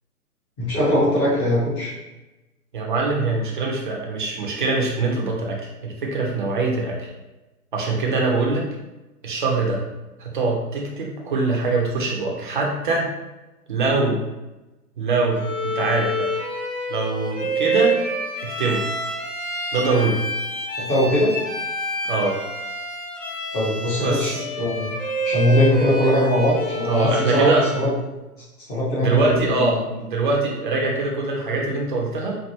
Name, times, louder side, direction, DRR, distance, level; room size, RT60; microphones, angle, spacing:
voice 1, 0.6-1.9 20.9-21.3 23.5-24.9 25.2-27.9 28.7-29.8, equal, 10° left, -8 dB, 0.8 m, -21 dB
voice 2, 2.7-7.1 7.7-8.7 9.2-9.8 10.2-13.1 13.7-14.2 15.0-16.3 16.9-18.0 18.4-18.8 19.7-20.2 22.1-22.4 24.0-24.4 26.8-27.6 29.0-32.4, right 3 dB, 30° right, -1 dB, 0.7 m, -23 dB
Bowed string instrument, 15.3-27.9, right 1 dB, 60° left, 1.1 m, -28 dB
4.6 x 2.5 x 2.7 m, 1.0 s
figure-of-eight pair, 135°, 47 cm